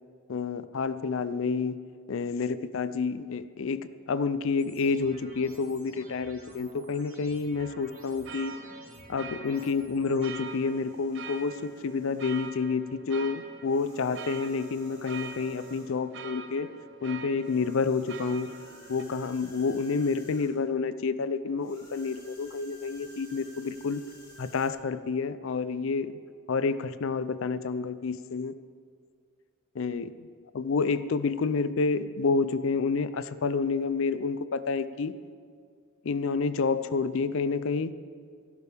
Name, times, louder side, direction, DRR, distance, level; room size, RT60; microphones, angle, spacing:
voice 1, 0.3-1.8 2.1-8.5 9.1-16.7 17.0-18.5 18.9-24.0 24.4-26.1 26.5-28.5 29.7-30.3 30.5-35.1 36.0-37.9, left 4 dB, 65° left, 14 dB, 0.4 m, -29 dB
sound 1, 4.6-10.3, right 1 dB, 35° right, 3.5 m, -52 dB
sound 2, 7.6-19.0, right 5 dB, 55° right, 0.6 m, -45 dB
sound 3, 10.4-12.6 13.6-16.1 17.4-20.7 21.6-24.7, right 1 dB, 15° left, 2.4 m, -53 dB
17.0 x 11.5 x 3.4 m, 2.1 s
head